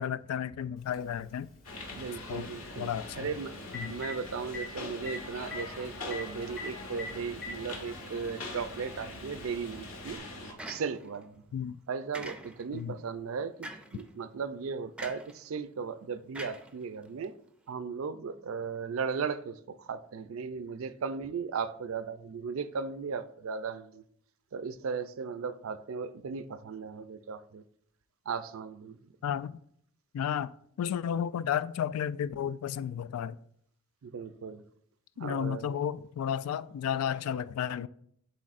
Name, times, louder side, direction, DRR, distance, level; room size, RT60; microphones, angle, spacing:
voice 1, 0.0-1.5 2.3-2.5 2.8-3.3 3.7-3.9 11.5-11.8 12.7-12.9 29.2-29.6 30.1-30.5 30.8-33.3 35.2-37.9, left 9 dB, 90° left, 0.3 m, -32 dB
Telephone, 0.9-1.0 3.2-3.3 3.6-4.1 4.5-4.6 5.1-5.2 5.4-5.6 6.1-6.2 6.6-6.7 7.0-7.6 8.5-8.6 10.1-10.2, left 2 dB, 45° left, 1.4 m, -38 dB
sound 1, 1.6-10.5, left 2 dB, 75° left, 1.4 m, -43 dB
voice 2, 2.0-3.6 3.9-11.4 11.9-17.3 17.7-24.0 24.5-27.6 28.3-29.0 34.0-34.6 35.2-35.8, right 5 dB, 70° right, 0.4 m, -37 dB
sound 2, 10.6-11.2 12.1-12.8 13.6-14.0 15.0-15.4 16.3-17.2, right 1 dB, 5° right, 0.4 m, -43 dB
11.0 x 4.2 x 2.5 m
head